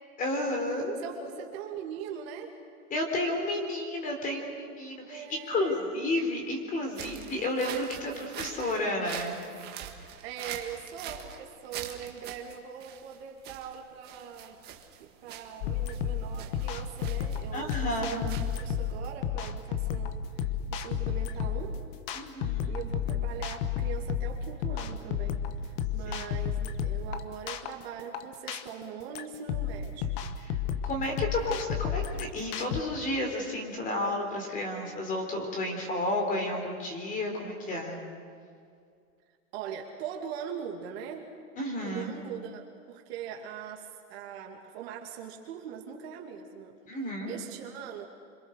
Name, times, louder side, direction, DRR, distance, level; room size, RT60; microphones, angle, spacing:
voice 1, 0.2-1.0 2.9-9.4 17.5-18.2 22.1-22.8 26.1-26.3 30.8-38.0 41.6-42.1 46.9-47.3, left 1 dB, 20° left, 2 dB, 4.0 m, -31 dB
voice 2, 1.0-2.6 5.0-6.0 8.0-8.3 10.2-14.6 15.0-21.8 22.7-30.1 39.5-41.3 41.8-46.8 47.2-48.1, right 8 dB, 40° right, 1 dB, 2.6 m, -41 dB
sound 1, 6.9-18.9, right 9 dB, 20° right, 1.7 m, -44 dB
sound 2, 15.6-32.8, left 8 dB, 35° left, 1.3 m, -32 dB
28.0 x 26.0 x 6.6 m, 2.3 s
hypercardioid pair, 150°, 45 cm